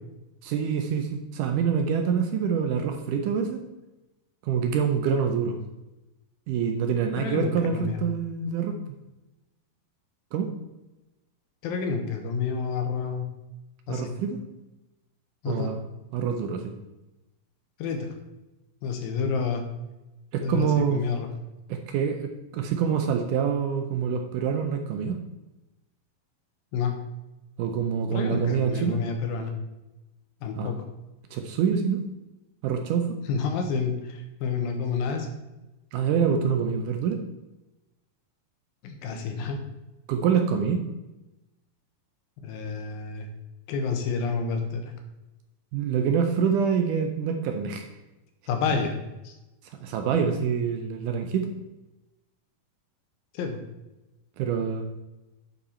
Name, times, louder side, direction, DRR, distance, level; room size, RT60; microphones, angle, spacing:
voice 1, 0.4-3.6 4.4-5.6 6.5-8.8 10.3-10.5 13.9-14.4 15.5-15.8 16.1-16.7 20.3-21.0 21.7-25.2 27.6-29.0 30.6-30.8 31.3-32.0 32.6-33.2 35.9-37.2 40.1-40.8 45.7-47.9 49.8-51.5 54.4-54.9, right 7 dB, 75° right, 5 dB, 2.0 m, -26 dB
voice 2, 7.2-8.0 11.6-13.3 13.9-14.1 15.4-15.7 17.8-18.1 18.8-19.6 20.4-21.3 26.7-26.9 28.1-29.5 30.4-30.8 33.3-35.3 38.8-39.6 42.4-43.3 43.7-44.9 48.5-48.9 49.2-49.3 53.3-53.6, left 5 dB, 80° left, 5 dB, 2.8 m, -29 dB
9.5 x 5.4 x 4.3 m, 1.0 s
omnidirectional pair, 4.1 m